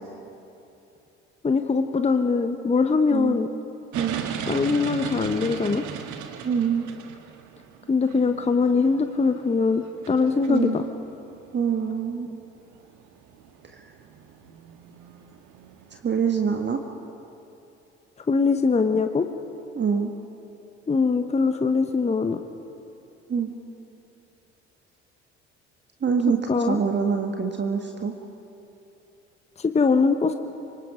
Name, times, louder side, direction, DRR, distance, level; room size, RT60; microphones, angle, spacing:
voice 1, 1.4-3.5 4.5-5.8 7.9-10.8 18.3-19.3 20.9-22.4 26.5-26.8 29.6-30.3, left 4 dB, 20° left, 8 dB, 1.0 m, -22 dB
voice 2, 3.1-3.4 3.9-4.2 6.4-6.9 10.5-10.8 11.5-12.3 15.9-16.8 19.7-20.1 23.3-23.5 26.0-26.4 26.6-28.1, right 6 dB, 30° right, 4 dB, 1.5 m, -25 dB
sound 1, 3.9-16.1, right 8 dB, 55° right, 1.7 m, -38 dB
26.0 x 23.5 x 5.1 m, 2.9 s
figure-of-eight pair, 55°, 35 cm